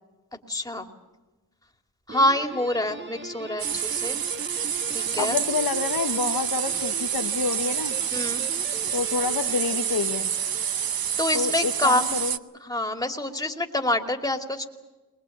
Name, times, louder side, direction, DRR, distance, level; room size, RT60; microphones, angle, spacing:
voice 1, 0.5-0.9 2.1-4.2 4.9-5.4 8.1-8.4 11.2-12.1 12.6-14.7, left 1 dB, 10° left, 5 dB, 2.8 m, -26 dB
Guitar, 2.1-11.4, right 2 dB, 30° right, 2.1 m, -40 dB
sound 1, 3.6-12.4, right 9 dB, 65° right, 0.9 m, -28 dB
voice 2, 5.2-8.0 8.9-10.3 11.3-12.4, left 6 dB, 60° left, 6 dB, 1.2 m, -28 dB
22.0 x 20.5 x 8.7 m, 1.2 s
cardioid pair, 55°, 39 cm